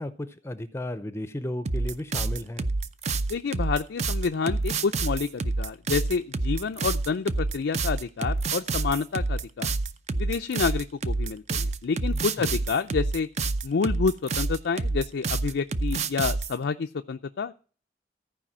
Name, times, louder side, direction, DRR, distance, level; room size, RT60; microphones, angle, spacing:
voice 1, 0.0-2.7 12.1-12.6, left 1 dB, 15° left, 12 dB, 0.5 m, -35 dB
sound 1, 1.7-16.5, right 3 dB, 40° right, 0.5 m, -28 dB
voice 2, 3.3-9.7 10.2-13.3 13.6-17.5, left 5 dB, 80° left, 7 dB, 0.4 m, -28 dB
14.0 x 4.9 x 7.2 m, 0.40 s
head